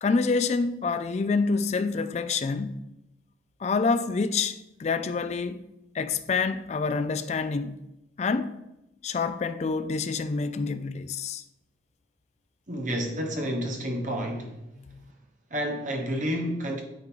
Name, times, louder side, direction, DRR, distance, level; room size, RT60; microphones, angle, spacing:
voice 1, 0.0-2.8 3.6-5.6 5.9-7.8 8.2-8.6 9.0-11.4 14.8-15.0, left 4 dB, 35° left, 0.3 m, -27 dB
voice 2, 12.7-14.6 15.5-16.8, equal, 40° right, 1.1 m, -30 dB
9.1 x 3.8 x 4.5 m
head